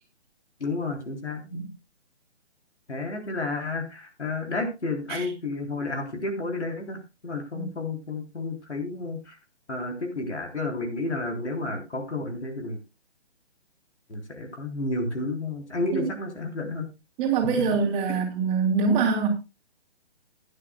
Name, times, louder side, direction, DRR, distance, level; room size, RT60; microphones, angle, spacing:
voice 1, 0.6-1.6 2.9-9.4 9.7-12.8 14.1-16.9, left 2 dB, 85° left, 3 dB, 3.7 m, -31 dB
voice 2, 17.2-19.3, right 5 dB, 20° right, 1 dB, 3.1 m, -24 dB
18.0 x 9.6 x 2.3 m, 0.27 s
figure-of-eight pair, 145°, 34 cm